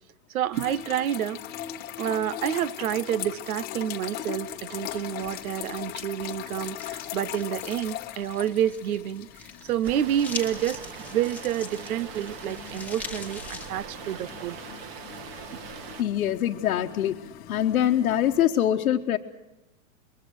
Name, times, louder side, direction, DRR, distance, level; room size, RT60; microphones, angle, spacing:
voice 1, 0.3-1.4 2.0-9.3 9.6-10.8 11.1-14.6 15.5-15.6, right 10 dB, 75° right, 1.0 m, -29 dB
sound 1, 0.5-18.4, left 12 dB, 20° left, 1.1 m, -40 dB
sound 2, 4.9-13.7, left 5 dB, 5° left, 1.5 m, -43 dB
sound 3, 9.8-16.0, right 7 dB, 40° right, 1.9 m, -41 dB
voice 2, 16.0-17.2 17.5-19.2, left 11 dB, 90° left, 1.3 m, -24 dB
27.0 x 22.5 x 6.3 m
supercardioid pair, 155°, 43 cm